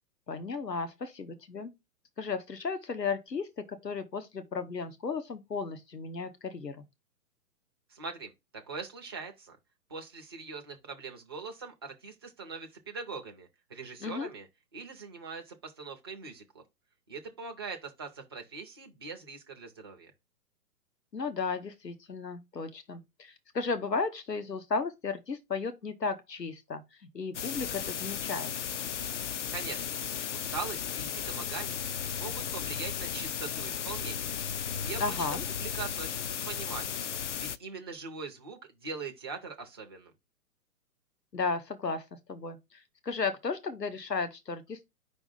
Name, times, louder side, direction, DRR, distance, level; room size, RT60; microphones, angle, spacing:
voice 1, 0.3-1.7 2.2-6.8 14.0-14.3 21.1-26.8 27.1-28.5 35.0-35.4 41.3-44.8, left 4 dB, 85° left, 1.1 m, -34 dB
voice 2, 7.9-9.6 9.9-14.5 14.7-16.6 17.1-20.1 29.5-29.9 30.3-34.4 34.8-35.3 35.6-37.1 37.4-40.1, right 4 dB, 15° right, 0.4 m, -42 dB
sound 1, 27.3-37.6, left 8 dB, 50° left, 0.5 m, -35 dB
5.2 x 3.4 x 5.5 m
figure-of-eight pair, 120°, 48 cm